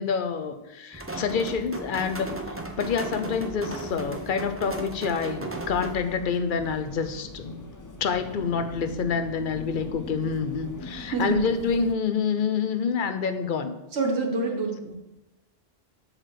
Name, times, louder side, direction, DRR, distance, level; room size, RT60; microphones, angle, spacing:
voice 1, 0.0-2.3 2.8-7.6 8.0-13.7, left 6 dB, 55° left, 9 dB, 0.9 m, -27 dB
sound 1, 0.9-6.0, right 2 dB, 15° right, 0.7 m, -35 dB
sound 2, 5.5-11.9, left 2 dB, 20° left, 0.6 m, -42 dB
voice 2, 13.9-14.9, right 3 dB, 80° right, 3 dB, 1.6 m, -26 dB
7.5 x 4.9 x 6.6 m, 0.98 s
omnidirectional pair, 1.1 m